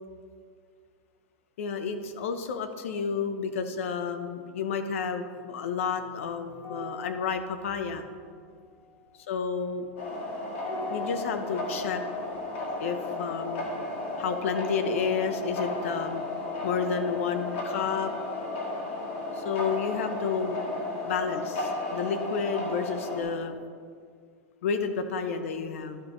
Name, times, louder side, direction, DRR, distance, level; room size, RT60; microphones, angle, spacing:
voice 1, 1.6-8.0 9.3-9.9 10.9-12.0 12.8-13.7 14.2-16.2 16.6-18.1 19.3-20.6 21.0-23.5 24.6-26.0, left 6 dB, 70° left, 8 dB, 0.8 m, -31 dB
sound 1, 6.6-15.3 15.6-15.8, left 2 dB, 40° left, 1.6 m, -44 dB
sound 2, 10.0-23.2, left 2 dB, 55° left, 1.7 m, -34 dB
12.0 x 6.2 x 3.0 m, 2.1 s
supercardioid pair, 170°, 7 cm